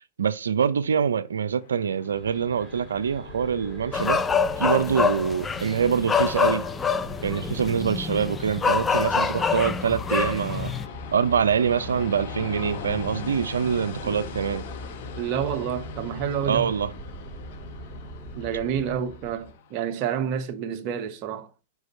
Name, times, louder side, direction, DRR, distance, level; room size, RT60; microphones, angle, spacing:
voice 1, 0.2-4.2 4.6-6.6 7.2-10.7 11.1-14.7 16.4-16.9, right 7 dB, 85° right, 0.5 m, -25 dB
Train, 1.2-19.9, left 4 dB, 60° left, 1.0 m, -41 dB
sound 1, 2.1-19.6, equal, 10° right, 2.0 m, -41 dB
sound 2, 3.9-10.9, left 5 dB, 15° left, 0.5 m, -26 dB
voice 2, 15.2-16.7 18.3-21.5, right 8 dB, 45° right, 1.0 m, -29 dB
5.2 x 4.8 x 5.3 m
hypercardioid pair, 110°, 0 cm